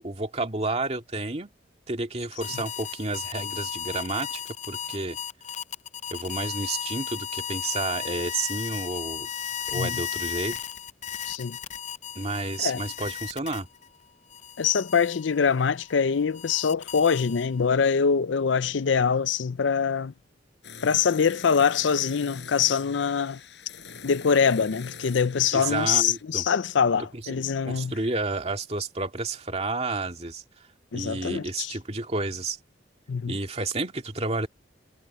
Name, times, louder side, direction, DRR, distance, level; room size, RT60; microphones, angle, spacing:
voice 1, 0.0-1.5 1.9-5.2 6.1-9.3 9.7-10.6 12.2-13.7 25.5-26.4 27.2-30.4 30.9-32.6 33.3-34.5, right 3 dB, 35° right, 2.2 m, -31 dB
sound 1, 2.4-13.9 14.3-17.7, left 8 dB, 40° left, 0.5 m, -35 dB
voice 2, 11.3-11.6 12.6-12.8 14.6-20.1 20.8-23.4 24.0-27.9 30.9-31.7 33.1-33.4, left 6 dB, 85° left, 0.5 m, -24 dB
sound 2, 20.6-26.2, left 6 dB, 70° left, 5.3 m, -44 dB
head